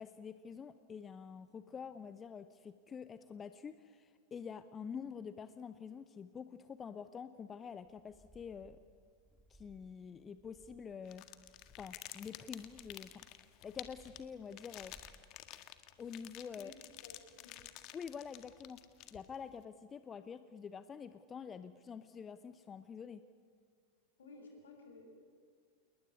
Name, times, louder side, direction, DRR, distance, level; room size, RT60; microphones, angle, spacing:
voice 1, 0.0-8.8 9.5-11.3 11.8-14.9 16.0-16.7 17.9-18.8 19.1-23.2, left 6 dB, 20° left, 12 dB, 0.9 m, -47 dB
sound 1, 7.8-15.2, right 1 dB, 5° right, 2.5 m, -66 dB
Ziplock bag play, 11.1-19.5, left 15 dB, 40° left, 1.7 m, -52 dB
voice 2, 16.6-17.6 24.2-25.1, left 3 dB, 65° left, 2 dB, 7.3 m, -56 dB
28.5 x 20.0 x 10.0 m, 2.1 s
figure-of-eight pair, 90°, 0 cm